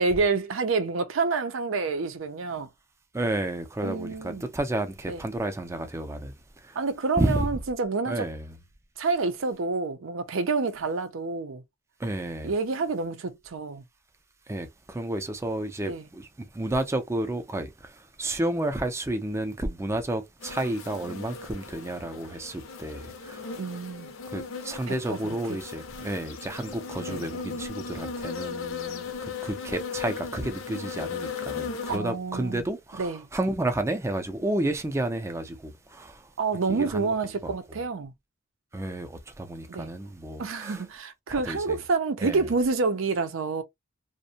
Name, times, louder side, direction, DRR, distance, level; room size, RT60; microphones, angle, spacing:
voice 1, 0.0-2.7 3.8-4.5 5.1-5.2 6.8-8.3 9.0-11.6 12.4-13.8 15.9-16.1 23.6-24.1 24.9-25.6 27.0-27.3 31.9-32.7 33.0-33.3 36.4-38.1 39.7-39.9 40.4-43.6, right 4 dB, 75° right, 0.5 m, -28 dB
voice 2, 3.1-6.3 6.6-6.8 7.2-7.5 8.1-8.5 12.0-12.5 14.5-16.3 16.5-23.6 24.3-36.3 36.7-37.1 37.4-37.8 38.7-40.8 41.3-41.8 42.2-42.5, right 1 dB, 15° right, 0.4 m, -31 dB
sound 1, 20.4-32.0, left 5 dB, 85° left, 0.6 m, -37 dB
2.5 x 2.1 x 2.7 m
head